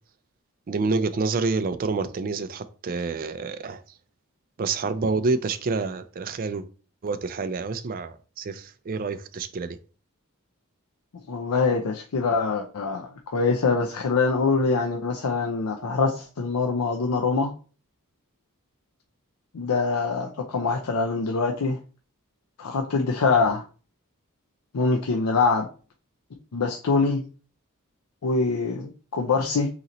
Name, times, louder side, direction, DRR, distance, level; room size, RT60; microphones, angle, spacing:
voice 1, 0.7-3.8 4.6-6.7 7.0-9.8, right 4 dB, 40° right, 0.4 m, -28 dB
voice 2, 11.3-17.5 19.5-21.8 22.6-23.6 24.7-25.7 26.5-27.2 28.2-29.7, left 4 dB, 85° left, 0.5 m, -24 dB
3.8 x 2.9 x 4.1 m
head